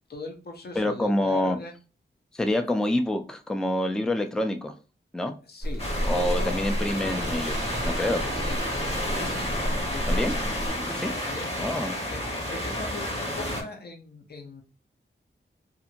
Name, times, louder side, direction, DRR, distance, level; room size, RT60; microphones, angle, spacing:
voice 1, 0.1-1.7 5.5-5.9 6.2-6.6 8.3-8.6 9.1-9.6 9.9-10.3 11.1-11.6 12.1-12.2 12.5-13.0 13.3-14.6, left 3 dB, 50° left, 0.6 m, -39 dB
voice 2, 0.8-1.6 2.3-4.7 5.1-5.3 6.0-8.2 10.1-10.3 10.9-11.1 11.6-12.0, left 1 dB, 5° left, 0.3 m, -27 dB
sound 1, 5.6-10.7, equal, 80° left, 1.0 m, -31 dB
sound 2, 5.8-13.6, left 1 dB, 30° left, 0.9 m, -31 dB
sound 3, 7.0-11.3, right 1 dB, 35° right, 0.8 m, -37 dB
2.5 x 2.5 x 2.8 m
wide cardioid pair, 105°, 21 cm